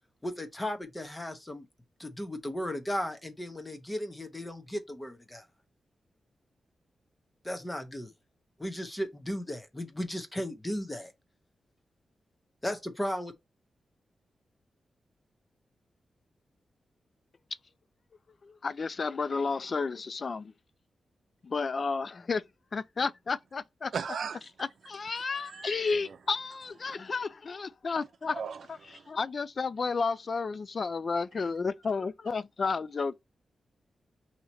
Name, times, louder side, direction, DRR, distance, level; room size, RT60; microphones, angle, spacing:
voice 1, 0.2-1.7 2.0-5.4 7.4-8.1 8.6-11.1 12.6-13.3, equal, 15° left, 0.9 m, -35 dB
voice 2, 18.4-20.5 21.4-22.4 22.7-23.9 24.6-28.4 29.1-33.2, left 4 dB, 50° left, 0.4 m, -32 dB
voice 3, 23.9-24.4 25.5-25.7 26.1-26.2 26.9-27.0 28.3-29.1, right 6 dB, 70° right, 0.6 m, -37 dB
5.5 x 2.9 x 2.8 m
cardioid pair, 90°, 0 cm